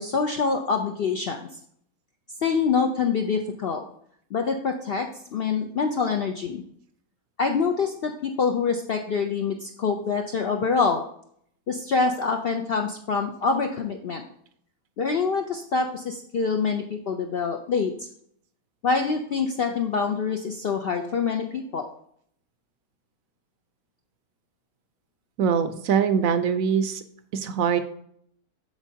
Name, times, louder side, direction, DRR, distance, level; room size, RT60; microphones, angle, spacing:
voice 1, 0.0-1.5 2.4-3.8 4.3-6.6 7.4-11.0 11.7-14.2 15.0-18.1 18.8-21.9, left 5 dB, 65° left, 4 dB, 0.6 m, -25 dB
voice 2, 25.4-27.0 27.3-27.8, right 7 dB, 70° right, 11 dB, 0.9 m, -23 dB
8.1 x 6.4 x 2.7 m, 0.67 s
omnidirectional pair, 1.6 m